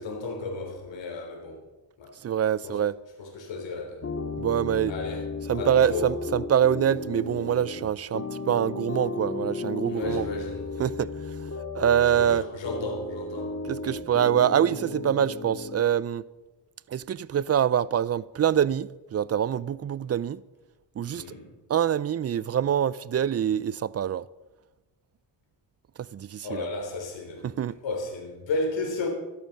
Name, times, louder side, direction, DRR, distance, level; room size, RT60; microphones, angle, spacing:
voice 1, 0.0-1.6 2.0-2.1 2.6-2.8 3.2-4.0 4.9-5.3 5.6-6.1 9.9-10.9 12.0-13.6 21.1-21.5 26.4-27.5 27.8-29.1, left 3 dB, 80° left, 3.5 m, -33 dB
voice 2, 2.2-3.0 4.4-4.9 5.5-10.3 10.8-11.1 11.7-12.5 13.6-16.2 16.9-20.4 21.0-21.2 21.7-24.3 26.1-26.7 27.4-27.8, right 9 dB, 35° right, 0.4 m, -25 dB
sound 1, 4.0-15.8, left 3 dB, 35° left, 1.7 m, -34 dB
13.5 x 13.0 x 5.2 m
cardioid pair, 80°, 44 cm